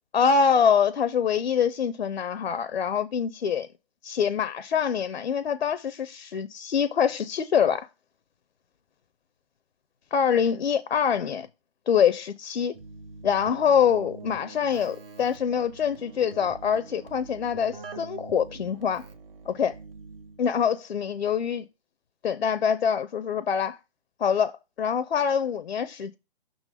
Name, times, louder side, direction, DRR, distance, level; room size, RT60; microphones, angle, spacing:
voice 1, 0.1-3.7 4.0-7.9 10.1-11.5 11.9-12.7 13.2-19.0 19.5-19.7 20.4-21.6 22.2-23.8 24.2-26.1, left 7 dB, 75° left, 0.6 m, -25 dB
Keyboard (musical), 12.7-20.6, right 4 dB, 65° right, 1.6 m, -44 dB
6.1 x 3.9 x 4.9 m
figure-of-eight pair, 135°, 31 cm